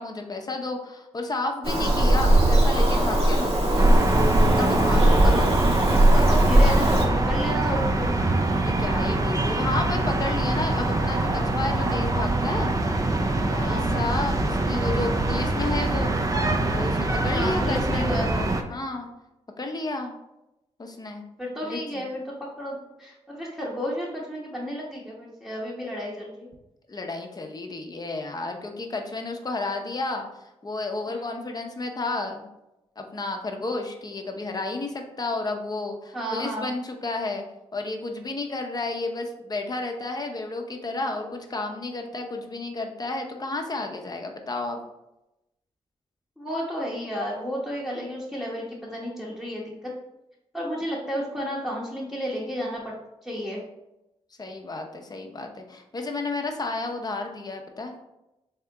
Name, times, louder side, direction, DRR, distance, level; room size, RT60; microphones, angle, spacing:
voice 1, 0.0-3.9 4.5-5.4 8.6-12.7 13.5-16.1 16.7-18.2 18.7-19.1 19.6-20.1 20.8-21.2 21.6-22.0 26.9-30.3 30.6-32.5 33.0-37.4 37.7-44.8 54.4-58.1, left 2 dB, 30° left, 3 dB, 0.7 m, -32 dB
Bird vocalization bird call bird song, 1.6-7.0, right 1 dB, 50° right, 1.1 m, -19 dB
sound 1, 3.8-18.6, right 2 dB, 25° right, 0.5 m, -24 dB
voice 2, 4.9-5.5 5.8-8.1 13.6-13.9 17.3-18.5 21.4-26.5 31.1-31.3 36.1-36.7 46.4-49.9 50.5-53.0 53.2-53.6, equal, ahead, -6 dB, 0.9 m, -32 dB
3.4 x 2.8 x 3.4 m, 0.93 s
cardioid pair, 55°, 12 cm